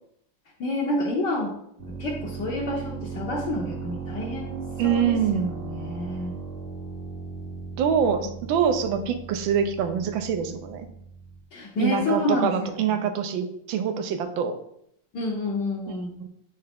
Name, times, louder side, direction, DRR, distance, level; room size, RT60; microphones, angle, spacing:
voice 1, 0.6-1.5 2.0-6.3 8.2-8.3 11.5-13.0 15.1-16.1, left 2 dB, 60° left, -2 dB, 1.4 m, -29 dB
sound 1, 1.8-11.4, right 5 dB, 50° right, 0.7 m, -37 dB
voice 2, 4.8-5.5 7.8-10.9 11.8-14.6 16.2-16.3, right 7 dB, 70° right, 8 dB, 1.3 m, -25 dB
9.4 x 3.3 x 3.5 m, 0.72 s
omnidirectional pair, 2.4 m